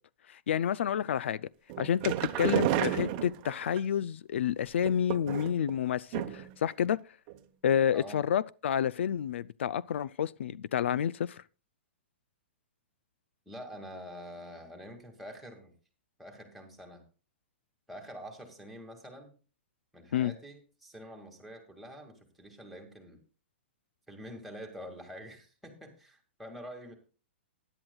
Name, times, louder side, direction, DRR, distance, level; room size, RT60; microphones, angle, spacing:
voice 1, 0.3-1.4 1.8-7.0 7.6-11.4 20.1-20.3, left 9 dB, 75° left, 0.4 m, -29 dB
sound 1, 1.7-3.8 4.8-5.7 6.1-6.6 6.8-6.9 7.3-7.4, right 13 dB, 35° right, 0.9 m, -31 dB
voice 2, 13.5-15.7 16.2-17.0 17.9-19.3 19.9-23.2 24.1-26.9, equal, ahead, 2.1 m, -46 dB
16.5 x 11.0 x 2.3 m
hypercardioid pair, 160°, 6 cm